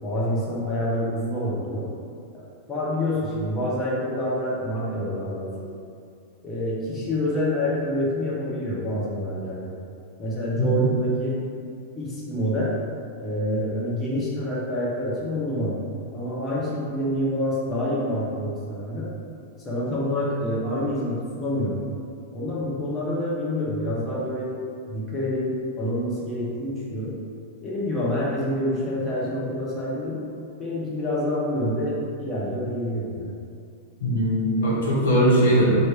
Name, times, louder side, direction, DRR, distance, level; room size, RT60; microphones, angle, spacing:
voice 1, 0.0-1.9 2.3-2.4 2.7-5.7 6.4-9.7 10.2-11.4 12.0-12.7 13.2-15.8 16.1-19.1 19.6-21.7 22.3-24.5 24.9-27.2 27.6-30.2 30.6-33.3, left 1 dB, 20° left, -7 dB, 1.2 m, -27 dB
voice 2, 34.0-35.8, equal, 70° left, -6 dB, 1.0 m, -20 dB
3.2 x 3.1 x 4.5 m, 2.4 s
figure-of-eight pair, 95°, 0 cm